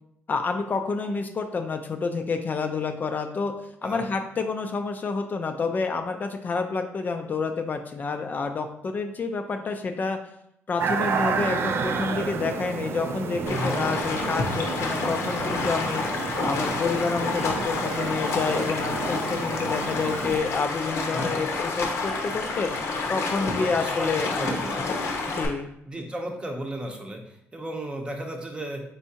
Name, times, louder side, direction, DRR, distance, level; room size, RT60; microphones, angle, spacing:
voice 1, 0.3-3.5 3.8-10.2 10.7-16.0 16.4-22.7 23.1-24.5 24.8-25.0 25.3-25.7, left 4 dB, 40° left, 5 dB, 0.4 m, -29 dB
voice 2, 3.8-4.1 13.5-13.9 21.1-21.4 23.6-24.8 25.9-28.8, right 1 dB, 20° right, 3 dB, 0.7 m, -34 dB
sound 1, 10.8-20.4, right 5 dB, 55° right, 0.4 m, -31 dB
Stream, 13.5-25.5, left 3 dB, 75° left, 0.8 m, -29 dB
4.4 x 3.5 x 2.8 m, 0.74 s
cardioid pair, 100°, 5 cm